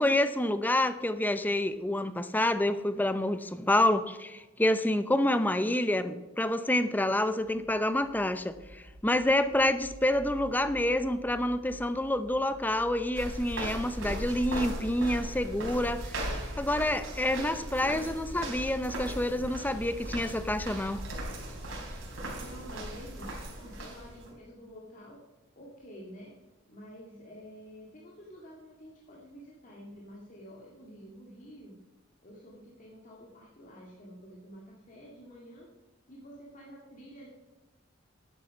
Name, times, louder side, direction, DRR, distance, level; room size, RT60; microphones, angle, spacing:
voice 1, 0.0-16.0 16.6-21.0, left 1 dB, 10° left, 11 dB, 0.5 m, -28 dB
sound 1, 7.1-21.9, equal, 45° right, 1.3 m, -49 dB
sound 2, 13.1-24.3, right 1 dB, 75° right, 3.9 m, -38 dB
voice 2, 22.3-25.2 25.5-26.3 26.7-31.8 32.2-35.7 36.1-37.3, equal, 40° left, -4 dB, 2.0 m, -49 dB
11.5 x 10.0 x 5.3 m, 1.1 s
head